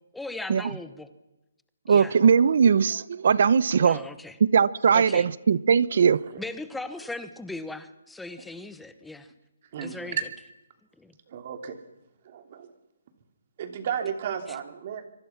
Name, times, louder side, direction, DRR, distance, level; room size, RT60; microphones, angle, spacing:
voice 1, 0.1-1.1 1.9-2.2 3.8-4.4 4.9-5.3 6.4-9.3 9.8-10.2 11.0-11.1, left 2 dB, 5° left, 11 dB, 1.0 m, -38 dB
voice 2, 1.9-4.0 4.4-6.2, right 6 dB, 55° right, 20 dB, 0.9 m, -20 dB
voice 3, 6.0-6.4 9.7-10.2 11.3-11.8 12.2-12.7 13.6-15.1, right 8 dB, 35° right, 7 dB, 2.8 m, -34 dB
25.0 x 24.5 x 5.9 m, 0.97 s
hypercardioid pair, 170°, 0 cm